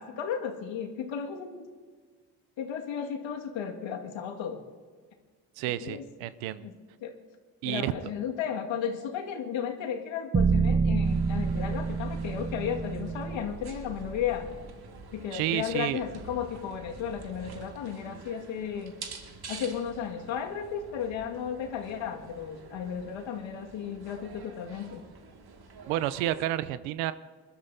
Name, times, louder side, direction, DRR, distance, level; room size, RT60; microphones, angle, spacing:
voice 1, 0.0-1.7 2.6-4.6 5.8-6.0 6.6-6.7 7.0-7.1 7.6-14.5 15.1-18.9 19.5-25.0, left 8 dB, 70° left, 3 dB, 2.1 m, -34 dB
voice 2, 5.6-6.7 7.6-7.9 15.3-16.0 25.9-27.1, right 14 dB, 80° right, 15 dB, 0.8 m, -30 dB
sound 1, 10.3-14.5, right 5 dB, 20° right, 0.4 m, -28 dB
sound 2, 11.0-26.5, right 4 dB, 50° right, 2.2 m, -47 dB
28.0 x 12.5 x 2.8 m, 1.5 s
hypercardioid pair, 40°, 47 cm